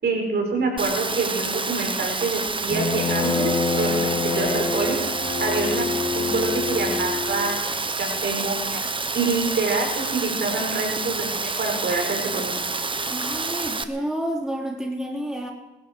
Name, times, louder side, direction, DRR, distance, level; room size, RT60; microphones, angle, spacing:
voice 1, 0.0-5.8 6.1-8.8 9.1-12.5, right 3 dB, 60° right, 1 dB, 4.9 m, -26 dB
Rain, 0.8-13.8, right 3 dB, 25° right, 1.1 m, -28 dB
Bowed string instrument, 2.7-7.6, left 4 dB, 25° left, 2.7 m, -26 dB
voice 2, 13.1-15.5, right 1 dB, 5° right, 0 dB, 3.2 m, -29 dB
24.0 x 12.0 x 4.6 m, 1.0 s
cardioid pair, 75°, 19 cm